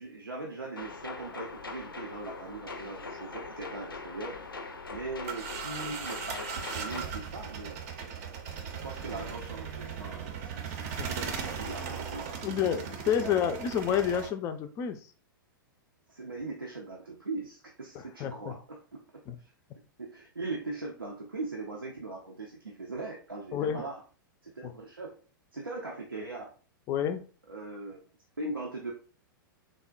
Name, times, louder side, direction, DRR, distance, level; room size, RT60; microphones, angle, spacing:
voice 1, 0.0-4.4 4.9-7.8 8.6-13.3 16.1-19.0 20.0-24.0 24.4-25.2 25.5-26.5 27.5-28.0 28.4-28.9, right 3 dB, 90° right, -2 dB, 0.5 m, -40 dB
sound 1, 0.8-7.0, left 3 dB, 85° left, 0.5 m, -42 dB
sound 2, 4.9-14.3, right 6 dB, 45° right, 0.5 m, -38 dB
voice 2, 12.4-15.0 18.2-18.5 19.3-19.4 23.5-23.8 24.6-24.7 26.9-27.2, left 9 dB, 25° left, 9 dB, 0.3 m, -29 dB
3.5 x 2.1 x 2.4 m, 0.38 s
figure-of-eight pair, 100°, 12 cm